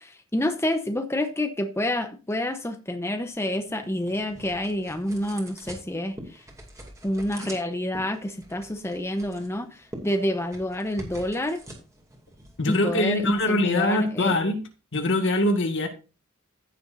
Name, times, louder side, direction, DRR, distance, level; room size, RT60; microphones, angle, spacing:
voice 1, 0.0-6.4 7.0-11.6 12.7-14.4, left 1 dB, 10° left, 6 dB, 0.8 m, -28 dB
sound 1, 3.3-13.5, right 1 dB, 15° right, 2.5 m, -45 dB
voice 2, 12.6-14.6 14.9-15.9, left 1 dB, 60° left, 5 dB, 1.9 m, -23 dB
15.0 x 6.9 x 2.6 m, 0.32 s
head